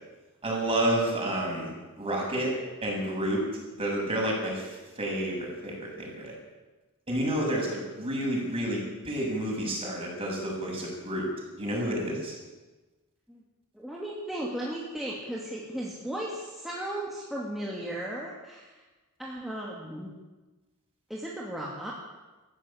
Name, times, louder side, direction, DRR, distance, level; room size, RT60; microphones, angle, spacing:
voice 1, 0.4-1.7 2.0-2.5 2.8-3.4 3.8-6.3 7.1-11.3 11.5-12.3, right 1 dB, 25° right, -2 dB, 7.6 m, -30 dB
voice 2, 13.7-18.8 19.2-20.1 21.1-21.9, right 1 dB, ahead, -4 dB, 2.7 m, -36 dB
19.5 x 15.0 x 8.9 m, 1.2 s
head